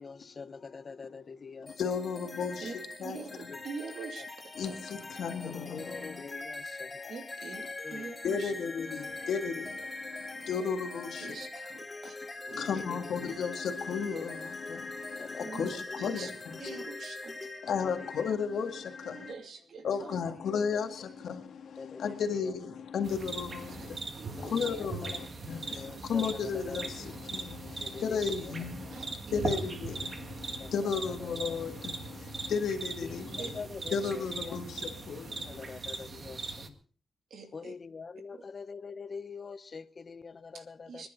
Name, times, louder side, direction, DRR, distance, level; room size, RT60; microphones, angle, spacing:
voice 1, 0.0-1.7 3.5-3.6 5.4-7.2 7.8-8.0 12.5-13.1 15.2-15.4 17.8-18.1 21.8-22.1 24.4-24.9 25.7-26.8 27.8-28.3 30.5-30.7 33.0-33.1 33.4-34.6 35.5-36.8 37.5-41.1, left 5 dB, 50° left, 0.9 m, -44 dB
sound 1, 1.7-19.3, left 2 dB, 25° left, 3.1 m, -42 dB
voice 2, 1.8-3.5 4.6-6.2 7.6-7.7 8.0-11.8 12.6-16.9 17.6-19.3 19.8-24.0 24.3-33.6 33.9-35.8, left 6 dB, 85° left, 1.9 m, -35 dB
voice 3, 3.0-4.2 4.6-4.7 7.1-7.6 7.9-8.5 11.2-12.2 12.5-12.7 15.4-15.7 16.0-16.3 16.6-17.4 19.0-20.1 23.8-23.9 24.2-24.7 26.2-26.3 28.9-29.6 33.4-34.1 37.3-37.7 38.3-38.4 40.5-41.1, right 5 dB, 80° right, 2.6 m, -44 dB
sound 2, 23.0-36.7, right 4 dB, 50° right, 1.8 m, -40 dB
26.0 x 10.5 x 4.0 m
cardioid pair, 85°, 0 cm